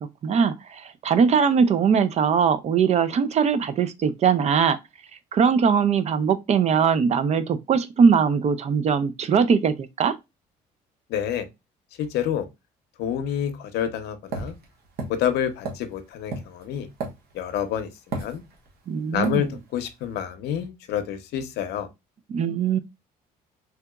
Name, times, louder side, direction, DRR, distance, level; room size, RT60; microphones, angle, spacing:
voice 1, 0.2-4.8 5.3-10.1 18.9-19.5 22.3-22.8, right 6 dB, 40° right, 0.4 m, -21 dB
voice 2, 11.1-11.5 12.0-12.5 13.0-14.6 15.1-16.9 17.3-18.4 19.1-21.9, left 9 dB, 80° left, 0.6 m, -28 dB
sound 1, 14.3-17.6 18.1-18.8 19.2-19.4, right 3 dB, 65° right, 1.1 m, -33 dB
3.3 x 2.9 x 2.2 m
cardioid pair, 110°, 17 cm